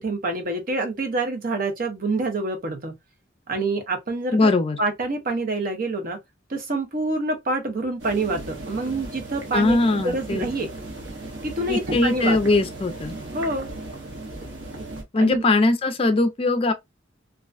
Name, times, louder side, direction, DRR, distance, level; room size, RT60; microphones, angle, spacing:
voice 1, 0.0-3.0 3.5-4.5 4.8-6.2 6.5-10.7 11.4-12.4 13.3-13.7 15.2-15.4, right 2 dB, 50° right, 0.7 m, -26 dB
voice 2, 4.3-4.8 9.5-10.4 11.7-13.1 15.1-16.7, left 2 dB, 30° left, 0.4 m, -20 dB
sound 1, 8.0-15.0, right 2 dB, 80° right, 0.9 m, -36 dB
2.3 x 2.2 x 2.4 m
head